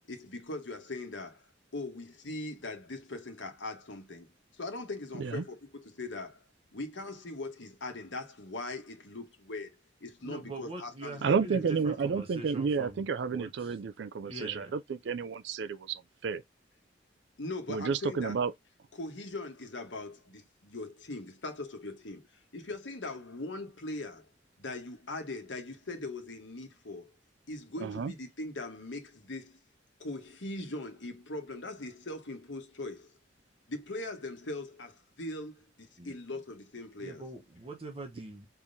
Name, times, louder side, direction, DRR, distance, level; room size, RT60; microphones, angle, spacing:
voice 1, 0.1-1.4 1.7-6.4 6.7-9.7 10.0-11.7 17.4-18.4 18.9-24.3 24.6-27.1 27.5-29.6 30.0-33.2 33.7-37.3, left 2 dB, 85° left, 1.2 m, -40 dB
voice 2, 10.2-13.8 14.2-14.7 36.0-36.2 37.0-38.5, right 2 dB, 30° right, 0.9 m, -43 dB
voice 3, 11.2-16.4 17.7-18.5 27.8-28.1, right 5 dB, 70° right, 0.4 m, -31 dB
4.5 x 3.7 x 2.7 m
head